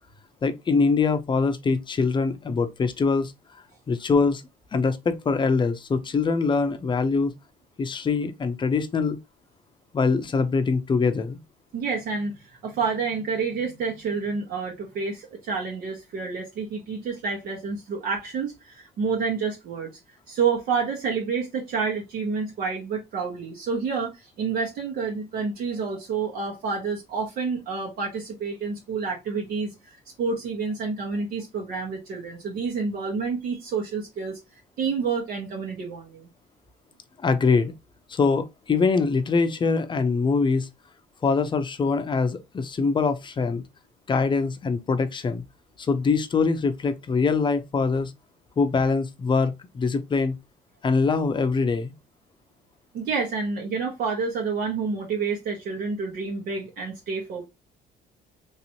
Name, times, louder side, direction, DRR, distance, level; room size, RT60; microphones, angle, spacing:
voice 1, 0.4-3.3 3.9-4.4 4.7-7.3 7.8-9.2 9.9-11.4 37.2-37.7 38.1-40.7 41.2-43.6 44.1-45.4 45.8-48.1 48.6-50.3 50.8-51.9, left 4 dB, 30° left, 0.6 m, -23 dB
voice 2, 11.7-20.0 20.3-29.7 30.2-34.4 34.8-36.3 52.9-57.5, right 5 dB, 65° right, 1.2 m, -29 dB
3.2 x 2.9 x 2.7 m
cardioid pair, 110°, 17 cm